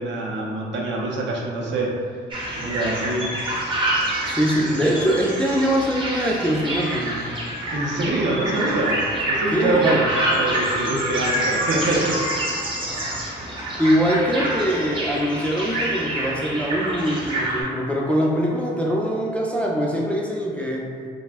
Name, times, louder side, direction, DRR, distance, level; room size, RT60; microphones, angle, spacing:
voice 1, 0.0-1.9 2.5-3.3 4.6-4.8 7.7-9.0 9.3-9.8 10.3-12.6, right 2 dB, 65° right, -2 dB, 0.6 m, -25 dB
sound 1, 2.3-17.6, right 1 dB, 25° right, 0.6 m, -26 dB
voice 2, 4.3-7.4 9.5-10.1 12.9-13.2 13.8-20.9, equal, 5° left, -3 dB, 0.3 m, -23 dB
2.4 x 2.0 x 3.4 m, 2.1 s
cardioid pair, 90°, 20 cm